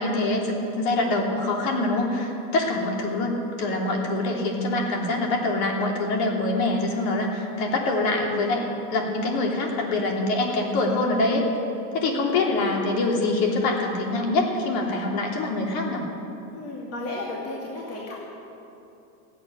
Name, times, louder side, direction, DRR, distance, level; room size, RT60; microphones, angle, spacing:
voice 1, 0.0-3.3 3.6-11.5 11.9-16.1, left 2 dB, 50° left, 0 dB, 3.2 m, -25 dB
voice 2, 12.0-12.6 16.5-18.1, left 2 dB, 30° left, -4 dB, 2.6 m, -35 dB
15.5 x 8.9 x 9.8 m, 2.8 s
supercardioid pair, 135°, 47 cm